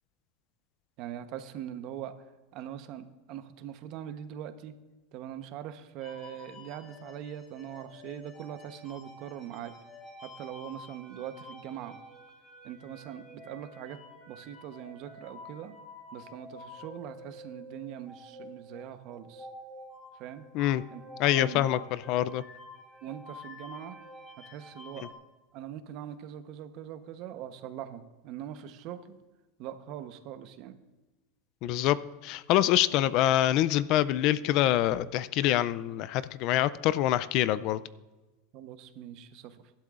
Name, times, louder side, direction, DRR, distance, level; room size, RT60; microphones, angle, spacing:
voice 1, 1.0-2.2 2.5-4.8 5.1-9.7 10.2-12.0 12.6-14.0 14.3-15.8 16.1-19.5 20.2-20.5 20.9-21.0 21.3-21.8 23.0-24.0 24.4-25.1 25.5-29.2 29.6-30.8 38.5-39.7, right 10 dB, 50° right, 9 dB, 1.0 m, -42 dB
sound 1, 6.0-25.1, left 1 dB, 20° left, 4.3 m, -49 dB
voice 2, 21.2-22.4 31.6-32.0 32.2-37.8, left 13 dB, 45° left, 17 dB, 0.4 m, -25 dB
23.0 x 11.5 x 2.5 m, 1.2 s
supercardioid pair, 150°, 0 cm